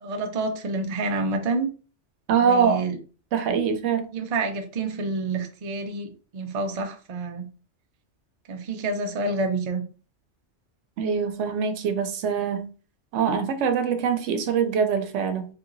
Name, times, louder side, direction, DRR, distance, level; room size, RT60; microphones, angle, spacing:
voice 1, 0.0-1.7 2.4-3.0 4.1-7.5 8.5-9.8, right 3 dB, 45° right, 0.5 m, -28 dB
voice 2, 2.3-2.8 3.3-4.1 11.0-12.7 13.1-15.5, right 6 dB, 85° right, 0.9 m, -23 dB
3.3 x 2.8 x 2.5 m
omnidirectional pair, 1.2 m